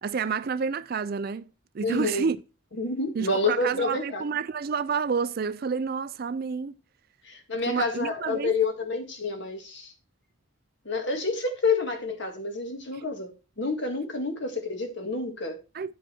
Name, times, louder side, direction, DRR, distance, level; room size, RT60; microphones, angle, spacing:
voice 1, 0.0-1.5 1.7-2.4 3.1-6.7 7.7-8.5 15.7-15.9, right 5 dB, 45° right, 0.4 m, -29 dB
voice 2, 1.8-2.3 2.8-4.2 7.2-9.9 10.9-15.6, left 3 dB, 55° left, 1.9 m, -29 dB
9.7 x 5.4 x 4.3 m
head